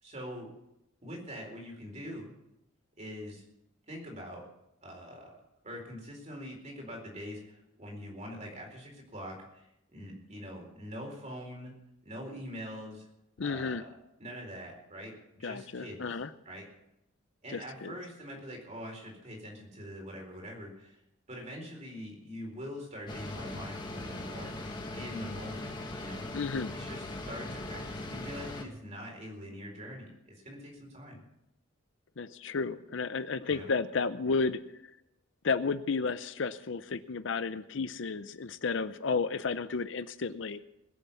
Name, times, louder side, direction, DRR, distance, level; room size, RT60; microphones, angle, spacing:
voice 1, 0.0-0.5 1.0-2.4 3.0-3.4 3.9-4.4 4.8-5.4 5.6-9.7 9.9-11.7 12.0-13.1 13.4-13.9 14.2-16.1 16.4-16.7 17.4-21.0 21.3-26.3 26.7-31.2 33.5-33.7, equal, 35° right, 0 dB, 4.3 m, -44 dB
voice 2, 13.4-13.8 15.4-16.3 17.5-17.9 26.3-26.8 32.2-34.6 35.4-40.7, left 4 dB, 65° left, 13 dB, 0.6 m, -32 dB
sound 1, 23.1-28.6, left 2 dB, 20° left, 1.7 m, -40 dB
21.0 x 7.3 x 7.0 m, 0.86 s
head